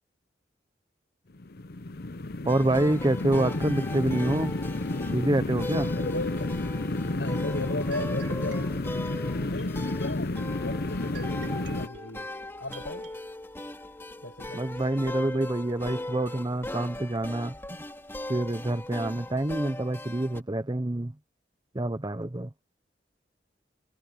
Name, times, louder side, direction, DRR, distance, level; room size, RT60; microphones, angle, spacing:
sound 1, 1.3-11.9, left 2 dB, 60° left, 0.8 m, -31 dB
voice 1, 2.4-4.5 5.1-5.9 14.5-17.6 18.3-21.1 21.7-22.5, right 1 dB, 25° right, 0.8 m, -27 dB
sound 2, 2.5-20.4, left 1 dB, 15° left, 2.5 m, -39 dB
voice 2, 5.7-6.5 7.2-8.8 9.5-12.3 12.6-13.1 14.2-14.6, left 2 dB, 80° left, 7.7 m, -36 dB
sound 3, 7.9-13.2, right 3 dB, 80° right, 4.1 m, -49 dB
head